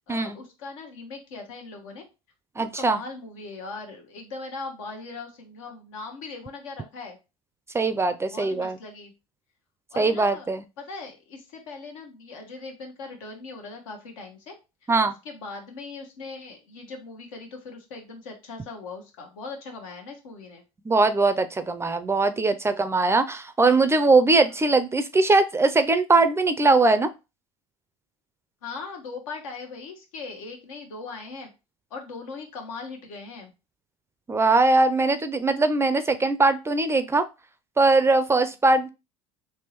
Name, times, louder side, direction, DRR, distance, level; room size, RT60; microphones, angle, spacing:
voice 1, 0.1-2.0 2.8-7.2 8.3-9.1 9.9-10.5 10.8-14.5 15.2-20.6 28.6-31.5 31.9-33.5, left 4 dB, 80° left, 2 dB, 1.1 m, -39 dB
voice 2, 2.6-3.0 7.7-8.8 10.0-10.6 14.9-15.1 20.9-27.1 34.3-37.2 37.8-38.9, right 3 dB, 15° right, 10 dB, 0.4 m, -21 dB
3.5 x 3.0 x 2.9 m, 0.28 s
hypercardioid pair, 85°, 17 cm